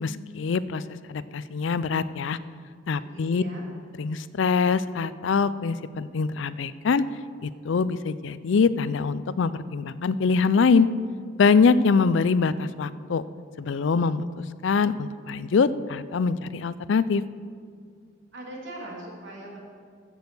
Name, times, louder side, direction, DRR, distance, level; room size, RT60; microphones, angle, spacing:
voice 1, 0.0-2.4 2.9-3.4 4.0-7.0 7.4-10.9 11.4-13.2 13.6-17.2, left 5 dB, 75° left, 16 dB, 0.4 m, -24 dB
voice 2, 2.9-3.6 18.3-19.6, right 1 dB, 70° right, -3 dB, 3.0 m, -40 dB
14.5 x 6.3 x 7.0 m, 2.1 s
head